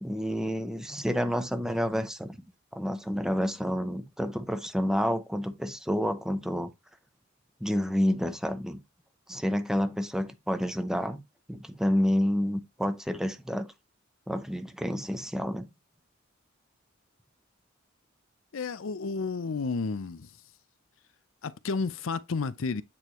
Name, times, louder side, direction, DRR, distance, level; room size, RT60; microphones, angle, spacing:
voice 1, 0.0-2.4 2.7-6.7 7.6-8.8 9.3-11.2 11.5-13.7 14.3-15.7, equal, 5° right, 0.8 m, -29 dB
voice 2, 18.5-20.3 21.4-22.8, left 4 dB, 75° left, 0.6 m, -31 dB
8.6 x 4.6 x 3.1 m
head